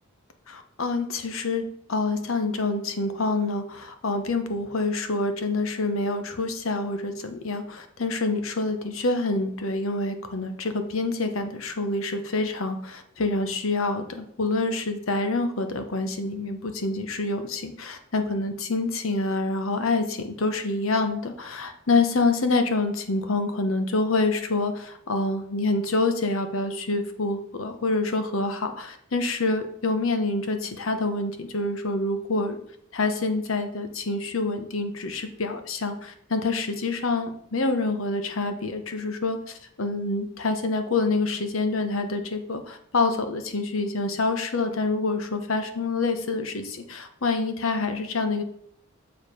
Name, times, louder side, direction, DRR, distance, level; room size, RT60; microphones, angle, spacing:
voice 1, 0.5-32.6 32.9-48.4, left 3 dB, 80° left, 7 dB, 1.0 m, -27 dB
7.2 x 4.8 x 4.9 m, 0.68 s
head